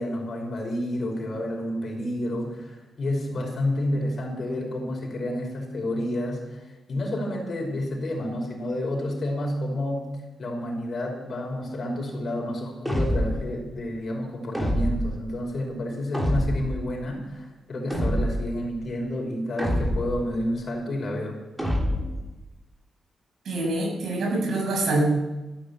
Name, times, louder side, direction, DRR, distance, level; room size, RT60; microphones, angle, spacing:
voice 1, 0.0-10.1 10.4-21.4, left 1 dB, 50° left, 0 dB, 5.8 m, -30 dB
sound 1, 12.8-13.5 14.5-15.2 16.1-16.8 17.9-18.5 19.6-20.3 21.6-22.2, equal, 5° right, 3.2 m, -26 dB
voice 2, 23.4-25.1, right 2 dB, 75° right, 0 dB, 6.9 m, -25 dB
14.0 x 11.5 x 8.6 m, 1.1 s
cardioid pair, 115°, 0 cm